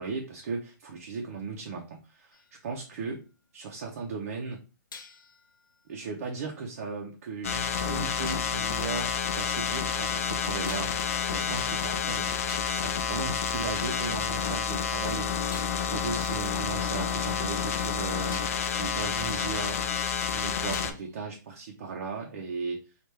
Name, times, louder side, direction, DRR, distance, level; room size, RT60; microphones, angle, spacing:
voice 1, 0.0-3.2 3.5-4.6 5.9-12.4 12.7-19.8 20.3-22.8, right 4 dB, 45° right, 0 dB, 0.6 m, -37 dB
sound 1, 2.3-3.7 4.9-7.0 8.3-8.7 10.7-11.2 12.0-12.1 12.5-14.1 15.5-17.7 18.3-18.7 20.7-21.3, left 4 dB, 80° left, 0.7 m, -49 dB
sound 2, 7.4-20.9, left 7 dB, 45° left, 0.4 m, -29 dB
3.2 x 2.4 x 3.3 m, 0.32 s
hypercardioid pair, 165°, 11 cm